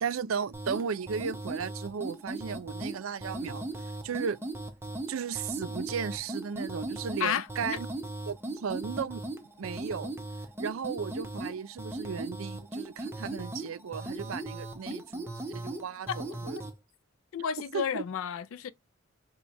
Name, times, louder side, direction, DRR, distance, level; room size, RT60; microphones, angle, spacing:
voice 1, 0.0-4.4 5.1-7.9 8.3-9.2 9.6-10.1 10.6-16.6 17.7-17.9, right 6 dB, 85° right, 0.5 m, -35 dB
sound 1, 0.5-16.7, right 2 dB, 10° right, 0.6 m, -38 dB
voice 2, 17.3-18.7, left 8 dB, 85° left, 0.4 m, -31 dB
4.4 x 2.2 x 4.1 m
head